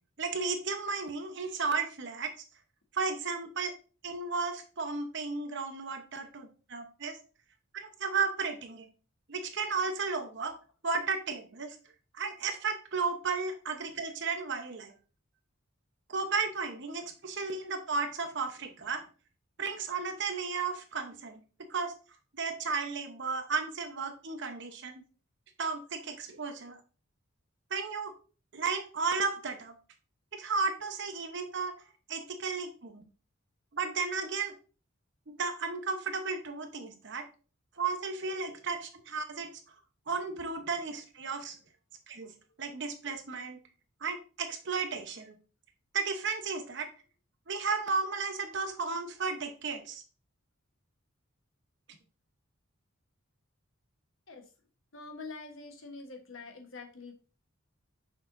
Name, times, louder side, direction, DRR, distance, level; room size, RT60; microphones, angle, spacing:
voice 1, 0.2-2.3 2.9-3.7 4.0-7.2 7.7-8.9 9.3-10.5 10.8-11.8 12.1-14.9 16.1-19.0 19.6-21.4 21.7-21.9 22.3-25.0 25.6-26.8 27.7-28.1 28.5-29.7 30.3-31.7 32.1-33.1 33.7-34.5 35.3-37.2 37.8-39.5 40.1-41.6 42.1-42.3 42.6-43.6 44.0-45.4 45.9-46.9 47.5-50.0, right 4 dB, 55° right, 6 dB, 0.9 m, -34 dB
voice 2, 54.9-57.1, left 3 dB, 65° left, 4 dB, 1.2 m, -45 dB
6.4 x 5.9 x 2.6 m, 0.36 s
head